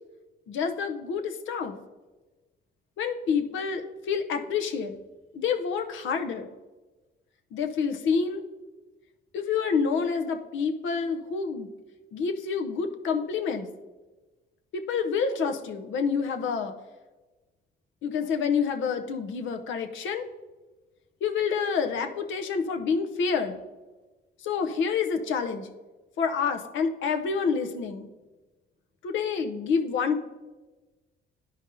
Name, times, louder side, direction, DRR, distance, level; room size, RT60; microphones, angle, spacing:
voice 1, 0.5-1.8 3.0-5.0 5.3-6.5 7.5-8.4 9.3-11.7 12.1-13.7 14.7-16.7 18.0-20.2 21.2-23.6 24.4-25.7 26.2-28.1 29.0-30.2, left 6 dB, 75° left, 6 dB, 0.7 m, -28 dB
11.0 x 5.2 x 2.6 m, 1.2 s
cardioid pair, 90°, 20 cm